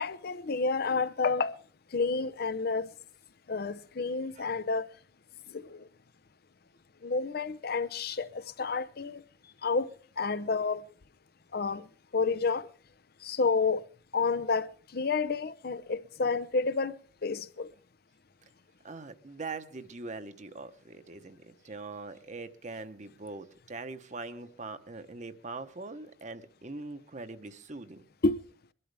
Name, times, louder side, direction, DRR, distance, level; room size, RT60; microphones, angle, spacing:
voice 1, 0.0-1.5 1.9-2.9 3.5-4.9 5.5-5.8 7.0-9.2 9.6-9.9 10.2-10.8 11.5-11.9 12.1-12.7 13.2-13.8 14.1-16.9 17.2-17.7 28.2-28.4, left 4 dB, 55° left, 0.7 m, -30 dB
voice 2, 18.8-28.0, right 3 dB, 40° right, 1.0 m, -42 dB
22.5 x 12.0 x 3.4 m
head